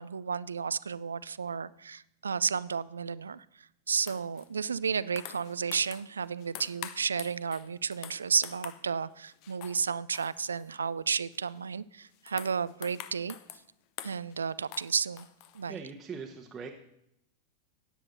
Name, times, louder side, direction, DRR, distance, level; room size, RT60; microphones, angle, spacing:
voice 1, 0.0-13.4 14.0-15.3 15.5-15.8, right 6 dB, 70° right, 18 dB, 0.3 m, -32 dB
sound 1, 4.0-4.5 4.8-6.1 6.4-8.8 9.3-9.9 10.1-10.8 11.3-11.6 12.0-13.6 14.0-14.4 14.7-15.7, left 12 dB, 45° left, 0.6 m, -46 dB
voice 2, 15.7-16.7, right 5 dB, 15° right, 1 dB, 1.0 m, -41 dB
16.5 x 9.7 x 2.7 m, 0.77 s
figure-of-eight pair, 90°, 0 cm